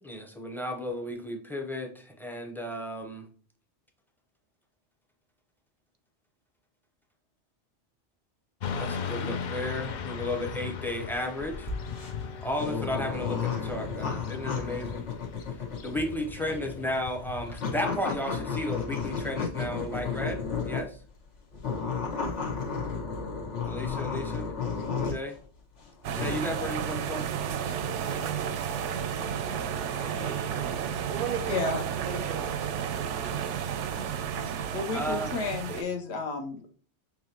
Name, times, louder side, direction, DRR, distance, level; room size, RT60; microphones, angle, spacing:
voice 1, 0.0-3.3 8.7-11.7 12.4-15.0 15.8-21.0 23.6-24.5 25.0-25.4 26.1-27.3 30.0-30.8 34.9-35.3, left 1 dB, ahead, 2 dB, 0.5 m, -34 dB
Motorcycle / Traffic noise roadway noise, 8.6-18.0, left 6 dB, 55° left, 0.5 m, -38 dB
sound 1, 11.2-21.0 21.5-25.3 25.8-26.4, left 5 dB, 85° left, 1.7 m, -33 dB
sound 2, 26.0-35.8, right 8 dB, 85° right, 0.9 m, -32 dB
voice 2, 27.6-28.3 30.2-32.6, right 6 dB, 60° right, 8 dB, 0.7 m, -37 dB
voice 3, 31.5-31.9 34.7-36.7, left 4 dB, 70° left, 4 dB, 1.1 m, -32 dB
6.3 x 2.8 x 2.8 m, 0.43 s
omnidirectional pair, 1.2 m